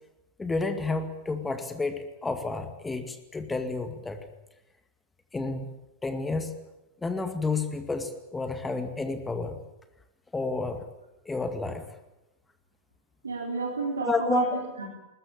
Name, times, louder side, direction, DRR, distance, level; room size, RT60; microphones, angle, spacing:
voice 1, 0.4-4.2 5.3-5.7 6.0-6.6 7.0-9.6 10.3-10.8 11.3-11.9 14.0-14.6, left 3 dB, 10° left, 8 dB, 2.2 m, -30 dB
voice 2, 13.2-14.9, right 3 dB, 75° right, -1 dB, 3.9 m, -31 dB
21.5 x 20.5 x 8.8 m, 0.95 s
figure-of-eight pair, 90°, 0 cm